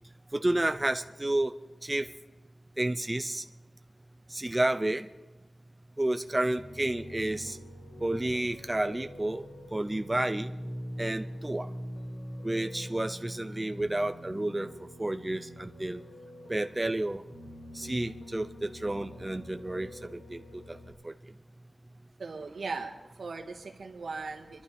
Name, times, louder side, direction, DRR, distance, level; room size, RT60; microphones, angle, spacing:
voice 1, 0.3-1.5 1.8-2.1 2.8-3.4 4.3-5.1 6.0-7.6 8.0-9.4 9.7-10.5 11.0-11.7 12.4-14.7 15.0-16.0 16.5-17.2 17.7-20.8 21.0-21.1, right 1 dB, 20° right, 8 dB, 0.5 m, -30 dB
Piano, 6.6-20.9, equal, 85° left, 3.0 m, -44 dB
voice 2, 22.2-24.6, right 4 dB, 85° right, 2 dB, 1.7 m, -38 dB
25.5 x 11.5 x 3.5 m, 1.1 s
wide cardioid pair, 105°, 0 cm